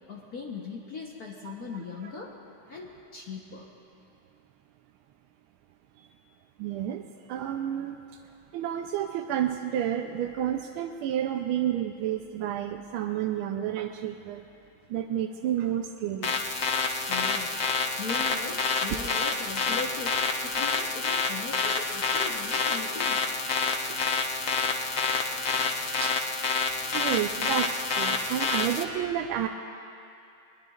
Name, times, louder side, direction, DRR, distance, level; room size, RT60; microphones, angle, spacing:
voice 1, 0.1-2.3 2.7-3.7 17.1-17.6 18.0-23.2, left 4 dB, 50° left, -2 dB, 1.3 m, -39 dB
voice 2, 1.4-1.8 6.6-7.0 7.3-8.0 8.5-14.4 14.9-16.3 26.0-26.2 26.9-29.5, right 10 dB, 80° right, 4 dB, 1.4 m, -30 dB
sound 1, 16.2-28.8, left 4 dB, 90° left, 0.6 m, -28 dB
21.5 x 21.0 x 2.4 m, 2.6 s
omnidirectional pair, 2.4 m